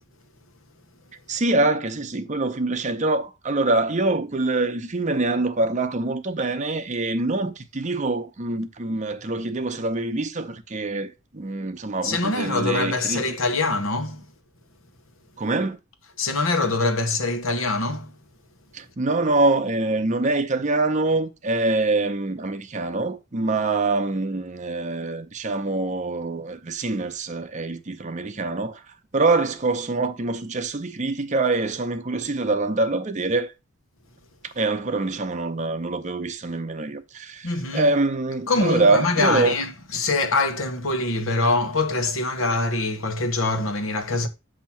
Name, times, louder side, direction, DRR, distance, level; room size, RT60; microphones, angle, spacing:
voice 1, 1.3-13.2 15.4-15.8 18.7-28.8 29.1-33.5 34.4-39.6, right 2 dB, 35° right, 0.7 m, -24 dB
voice 2, 12.0-14.3 16.2-18.1 37.4-37.9 38.5-44.3, left 3 dB, 85° left, 1.1 m, -24 dB
7.3 x 2.8 x 5.6 m
head